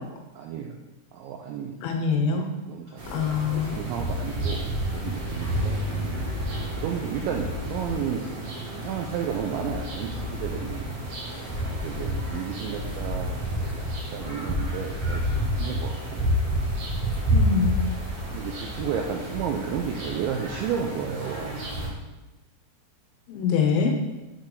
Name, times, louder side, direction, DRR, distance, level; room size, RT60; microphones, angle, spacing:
voice 1, 0.4-0.8 1.1-1.9 2.2-4.7 4.9-5.8 6.7-8.3 8.7-11.0 11.7-16.3 18.3-21.6, right 7 dB, 90° right, 2 dB, 2.6 m, -33 dB
voice 2, 1.8-2.5 3.1-3.8 17.3-17.8 23.3-23.9, left 6 dB, 80° left, 3 dB, 3.4 m, -24 dB
sound 1, 3.0-21.9, equal, 50° right, 3.2 m, -29 dB
8.1 x 6.5 x 3.9 m, 1.1 s
omnidirectional pair, 5.9 m